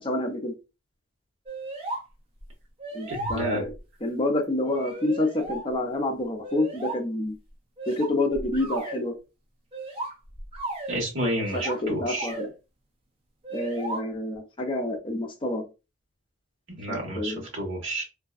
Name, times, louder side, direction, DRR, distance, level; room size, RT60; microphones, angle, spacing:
voice 1, 0.0-0.5 2.9-3.7 4.0-7.4 7.9-9.2 11.5-12.5 13.5-15.7 16.9-17.5, left 1 dB, 25° left, 3 dB, 0.6 m, -28 dB
sound 1, 1.5-2.0 2.4-2.5 2.8-3.8 4.6-5.7 6.4-7.0 7.8-9.0 9.7-11.0 11.4-11.8 12.2-12.5 13.4-14.0, right 2 dB, 30° right, 0.6 m, -35 dB
voice 2, 3.1-3.6 10.9-12.3 16.8-18.0, right 1 dB, 60° right, -1 dB, 1.3 m, -30 dB
2.6 x 2.2 x 2.4 m, 0.28 s
head